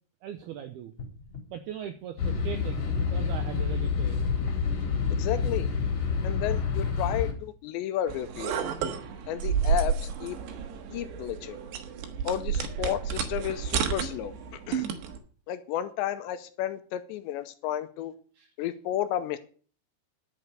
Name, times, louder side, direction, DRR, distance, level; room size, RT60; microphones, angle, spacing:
voice 1, 0.2-0.9 1.5-4.2 18.3-18.5, right 9 dB, 90° right, 2.2 m, -39 dB
sound 1, 0.9-2.6 3.1-4.7 5.3-7.0 7.6-7.7, left 3 dB, 20° left, 2.5 m, -46 dB
sound 2, 2.2-7.3, left 5 dB, 45° left, 2.5 m, -28 dB
voice 2, 5.1-5.7 6.2-8.5 9.3-10.4 10.9-11.6 12.2-14.9 15.5-18.1 18.6-19.4, left 11 dB, 80° left, 2.8 m, -32 dB
sound 3, 8.1-15.2, right 7 dB, 70° right, 3.3 m, -31 dB
11.0 x 8.7 x 6.7 m
omnidirectional pair, 5.5 m